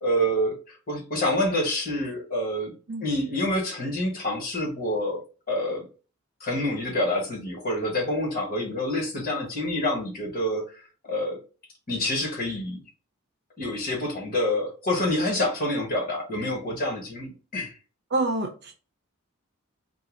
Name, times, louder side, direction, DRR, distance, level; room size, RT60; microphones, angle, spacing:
voice 1, 0.0-2.7 3.0-5.2 5.5-5.9 6.4-11.4 11.9-12.8 13.6-17.7, left 1 dB, 45° left, 1.5 m, -27 dB
voice 2, 18.1-18.7, right 2 dB, 50° right, 0.7 m, -27 dB
2.7 x 2.4 x 3.8 m
head